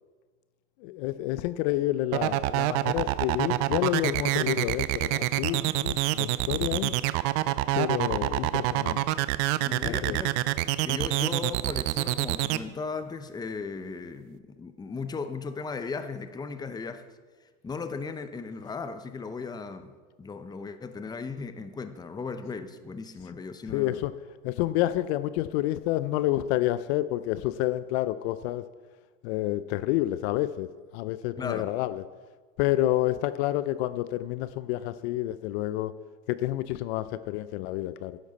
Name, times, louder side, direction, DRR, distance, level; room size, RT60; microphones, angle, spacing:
voice 1, 0.8-7.0 7.7-9.0 9.8-10.2 23.7-24.1 24.4-28.6 29.2-30.7 30.9-32.0 32.6-35.9 36.3-38.2, left 15 dB, 55° left, 14 dB, 0.5 m, -29 dB
sound 1, 2.1-12.6, right 17 dB, 55° right, 0.6 m, -26 dB
voice 2, 9.6-10.3 10.8-17.0 17.6-19.9 20.2-24.0 31.4-31.7, left 4 dB, 10° left, 10 dB, 0.7 m, -36 dB
11.0 x 10.5 x 4.1 m, 1.4 s
hypercardioid pair, 105°, 39 cm